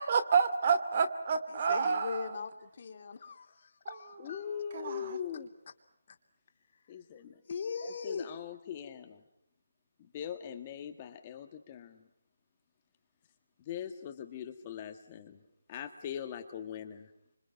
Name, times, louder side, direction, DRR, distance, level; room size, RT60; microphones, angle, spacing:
voice 1, 0.0-2.3 4.7-5.2, right 6 dB, 40° right, 10 dB, 2.4 m, -29 dB
voice 2, 1.5-4.5 6.1-6.2 7.5-8.3, left 5 dB, 50° left, 5 dB, 3.1 m, -40 dB
voice 3, 4.2-5.5 6.9-7.3 7.8-9.2 10.1-12.0 13.7-15.4 15.7-17.1, left 9 dB, 25° left, 6 dB, 1.8 m, -41 dB
27.5 x 26.0 x 6.0 m, 0.74 s
hypercardioid pair, 165°, 0 cm